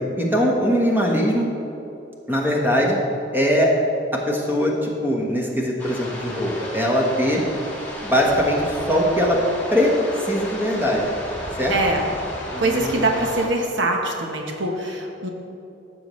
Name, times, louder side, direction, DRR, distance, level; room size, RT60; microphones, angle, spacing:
voice 1, 0.2-1.5 2.3-3.0 3.3-3.7 4.1-7.4 8.0-9.4 9.7-9.9 10.2-11.0 11.6-11.7 12.5-13.0, equal, 10° right, -2 dB, 1.2 m, -21 dB
sound 1, 5.8-13.5, equal, 10° left, 1.7 m, -33 dB
voice 2, 11.7-12.1 12.6-15.3, right 2 dB, 75° right, 1 dB, 1.0 m, -23 dB
15.0 x 6.9 x 3.2 m, 2.9 s
head